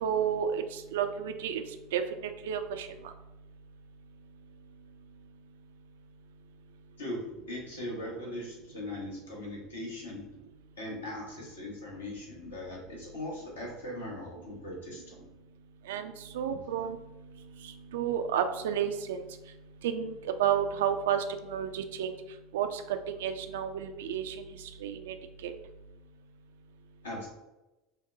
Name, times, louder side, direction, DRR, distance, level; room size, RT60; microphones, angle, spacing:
voice 1, 0.0-1.6 1.9-2.9 15.9-17.0 17.9-19.2 19.8-22.1 22.5-22.8 23.1-24.3 24.8-25.1 25.4-25.5, right 8 dB, 65° right, 8 dB, 0.3 m, -31 dB
voice 2, 7.0-10.3 10.8-15.2 27.0-27.3, left 1 dB, 75° left, -2 dB, 1.0 m, -39 dB
5.4 x 2.1 x 2.6 m, 1.0 s
figure-of-eight pair, 75°, 0 cm